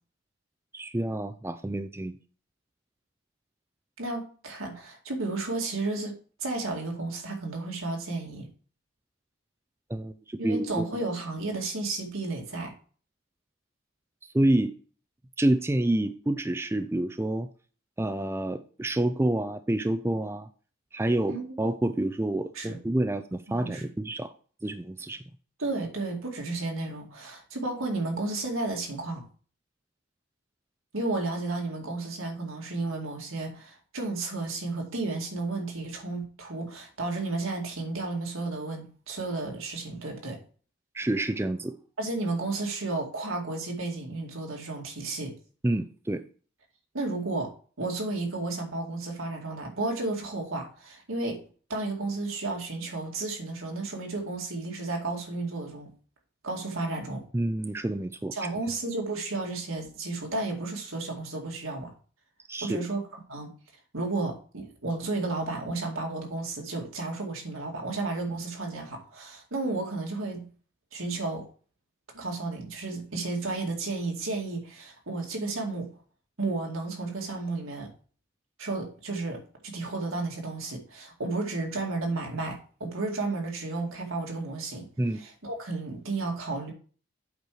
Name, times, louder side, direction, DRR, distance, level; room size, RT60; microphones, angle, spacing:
voice 1, 0.7-2.2 9.9-11.1 14.3-14.7 15.4-17.5 18.0-20.5 20.9-24.3 24.6-25.2 40.9-41.7 45.6-46.2 57.3-58.5 62.5-62.8 85.0-85.2, right 1 dB, 10° right, 9 dB, 0.4 m, -28 dB
voice 2, 4.0-6.1 6.4-8.5 10.4-12.7 21.3-21.6 22.5-22.8 23.5-23.9 25.6-29.2 30.9-40.4 42.0-45.3 46.9-47.5 47.8-51.4 51.7-55.9 56.4-57.2 58.3-61.9 62.6-63.5 63.9-70.5 70.9-71.5 72.1-75.9 76.4-77.9 78.6-84.9 85.2-86.7, right 3 dB, 85° right, 0 dB, 2.3 m, -32 dB
8.1 x 4.6 x 4.9 m, 0.40 s
head